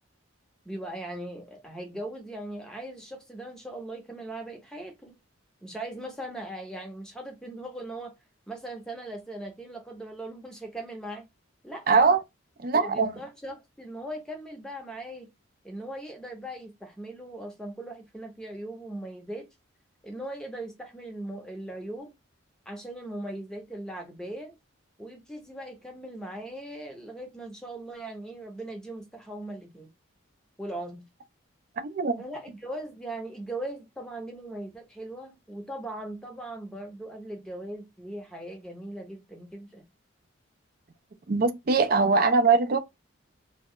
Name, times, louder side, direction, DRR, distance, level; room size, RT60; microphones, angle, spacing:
voice 1, 0.6-5.2 5.6-8.1 8.5-11.3 11.6-12.0 12.7-15.3 15.6-19.5 20.0-22.1 22.7-24.5 25.0-29.9 30.6-31.0 32.2-39.8, right 1 dB, 5° left, 0.6 m, -39 dB
voice 2, 11.9-12.2 12.6-13.2 31.8-32.2 41.3-42.8, right 4 dB, 45° right, 0.4 m, -22 dB
2.3 x 2.0 x 3.6 m
head